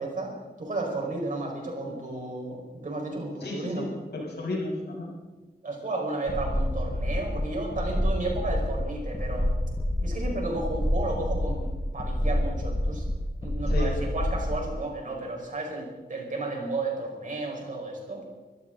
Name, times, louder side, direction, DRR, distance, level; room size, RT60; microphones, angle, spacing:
voice 1, 0.0-3.9 5.6-9.5 10.0-13.0 13.4-18.2, right 2 dB, 50° right, 0 dB, 5.2 m, -33 dB
voice 2, 3.4-5.1 13.7-13.9, left 2 dB, 80° left, -3 dB, 6.3 m, -33 dB
sound 1, 6.3-14.7, left 1 dB, 20° left, 1.5 m, -28 dB
24.0 x 14.5 x 4.0 m, 1.2 s
wide cardioid pair, 120°, 17 cm